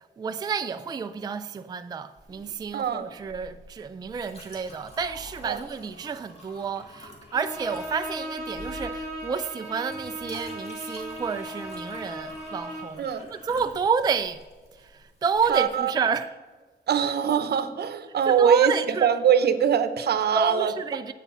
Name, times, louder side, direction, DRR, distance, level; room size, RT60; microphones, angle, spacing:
voice 1, 0.2-14.4 14.7-16.3 18.3-19.1 20.3-21.1, right 6 dB, 25° right, 0.3 m, -30 dB
Chink clink, 2.2-15.7, equal, 35° left, 2.3 m, -48 dB
voice 2, 2.7-3.1 5.5-5.6 13.0-13.3 15.5-16.1 16.9-20.7, right 8 dB, 70° right, 0.8 m, -23 dB
Bowed string instrument, 7.3-13.0, equal, 20° left, 2.4 m, -37 dB
11.0 x 8.3 x 5.6 m
wide cardioid pair, 165°, 18 cm